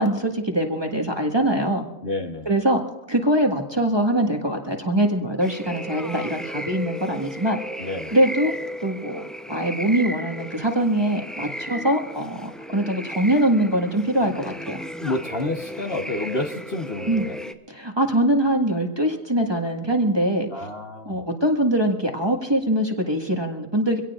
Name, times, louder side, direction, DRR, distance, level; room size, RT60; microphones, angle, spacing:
voice 1, 0.0-1.9 2.4-2.8 3.1-7.6 8.1-8.5 8.8-9.2 9.5-14.8 17.1-17.3 17.7-20.5 21.0-24.0, right 1 dB, 20° right, 2 dB, 1.6 m, -23 dB
voice 2, 2.0-2.5 7.8-8.1 11.4-11.5 15.0-17.4 20.5-21.2, left 2 dB, 45° left, 3 dB, 1.3 m, -29 dB
sound 1, 5.4-17.5, equal, ahead, 0.4 m, -35 dB
25.0 x 17.5 x 2.5 m, 1.1 s
omnidirectional pair, 1.4 m